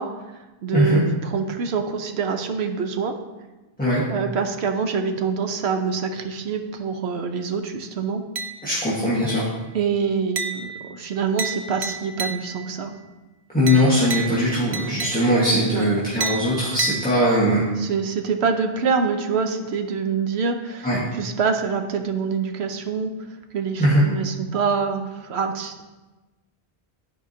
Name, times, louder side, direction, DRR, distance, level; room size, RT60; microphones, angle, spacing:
voice 1, 0.0-3.1 4.1-8.2 9.7-12.9 15.7-15.9 17.8-23.1 23.5-25.8, right 5 dB, 85° right, 6 dB, 1.0 m, -25 dB
sound 1, 8.4-8.9 9.3-9.7 10.4-12.8 13.7-15.6 16.2-17.6, right 5 dB, 50° right, 0.4 m, -32 dB
voice 2, 8.6-9.5 13.5-17.6 20.8-21.0 23.8-24.0, equal, 10° left, -8 dB, 1.4 m, -20 dB
12.5 x 4.6 x 2.8 m, 1.2 s
omnidirectional pair, 1.1 m